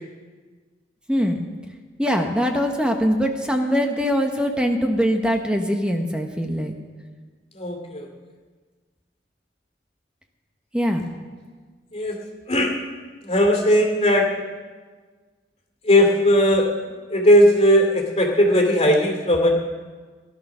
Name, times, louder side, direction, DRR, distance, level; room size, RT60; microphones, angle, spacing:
voice 1, 1.1-1.4 2.0-6.7 10.7-11.0, equal, 5° right, 3 dB, 1.0 m, -22 dB
voice 2, 7.6-8.1 11.9-12.2 12.5-12.7 13.2-14.3 15.8-19.5, equal, 35° left, 1 dB, 2.4 m, -18 dB
17.0 x 11.5 x 6.2 m, 1.5 s
head